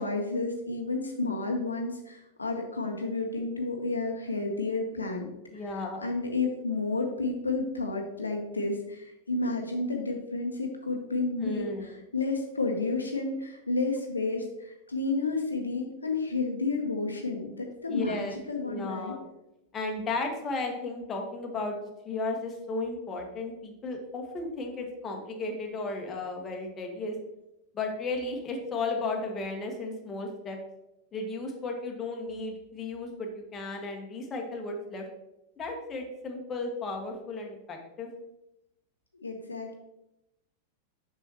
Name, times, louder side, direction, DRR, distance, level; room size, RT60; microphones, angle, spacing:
voice 1, 0.0-19.2 39.2-39.7, left 3 dB, 80° left, 2 dB, 0.9 m, -31 dB
voice 2, 5.5-6.1 11.4-11.9 17.9-19.2 19.7-21.8 22.0-27.1 27.7-30.6 31.1-35.0 35.6-38.1, left 3 dB, 25° left, 2 dB, 1.2 m, -34 dB
6.9 x 6.0 x 2.9 m, 0.89 s
figure-of-eight pair, 90°, 0 cm